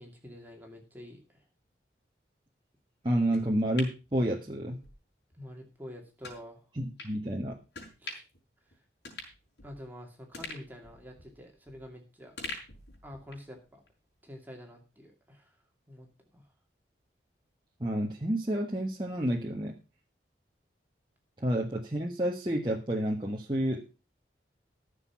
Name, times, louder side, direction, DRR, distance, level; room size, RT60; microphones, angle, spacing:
voice 1, 0.0-1.4 5.3-6.7 8.0-8.2 8.7-8.8 9.6-12.3 13.0-13.8 14.2-15.6 15.9-16.5, equal, 10° right, 1 dB, 2.4 m, -48 dB
voice 2, 3.0-4.8 6.8-7.6 17.8-19.7 21.4-23.8, right 1 dB, 25° right, -2 dB, 1.5 m, -30 dB
sound 1, 3.3-4.9 5.3-5.4 6.2-6.4 7.0-7.1 7.7-8.4 8.7-8.8 9.0-9.9 10.3-11.9 12.4-13.5 13.9-14.0, left 3 dB, 65° left, 5.4 m, -44 dB
14.5 x 6.9 x 5.8 m, 0.31 s
head